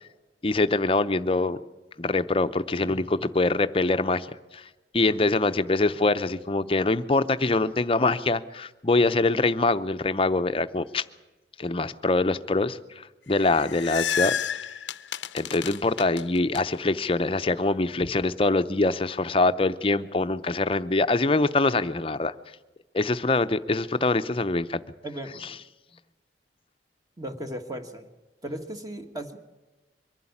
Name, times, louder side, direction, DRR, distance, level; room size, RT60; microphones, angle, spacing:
voice 1, 0.4-1.6 2.0-4.3 4.5-4.6 4.9-11.0 11.6-14.3 15.3-22.3 22.9-24.8, left 2 dB, 30° left, 12 dB, 0.7 m, -24 dB
sound 1, 13.3-16.6, left 9 dB, 80° left, 0.6 m, -30 dB
voice 2, 25.0-25.6 27.2-28.1 28.4-29.4, right 1 dB, 20° right, 6 dB, 1.5 m, -36 dB
23.5 x 11.5 x 9.7 m, 1.1 s
head